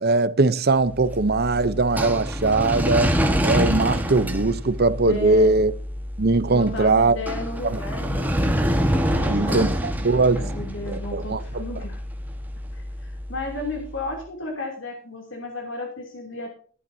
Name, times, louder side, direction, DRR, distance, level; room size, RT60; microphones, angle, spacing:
voice 1, 0.0-3.2 3.4-5.7 6.2-7.2 7.6-7.8 9.2-10.4 10.9-11.6, right 3 dB, 50° right, 0.8 m, -21 dB
sound 1, 0.8-13.9, equal, 10° right, 1.5 m, -27 dB
voice 2, 5.1-5.5 6.5-8.3 9.1-9.7 10.4-12.0 12.7-16.5, left 2 dB, 70° left, 3.1 m, -33 dB
15.0 x 11.5 x 2.8 m
head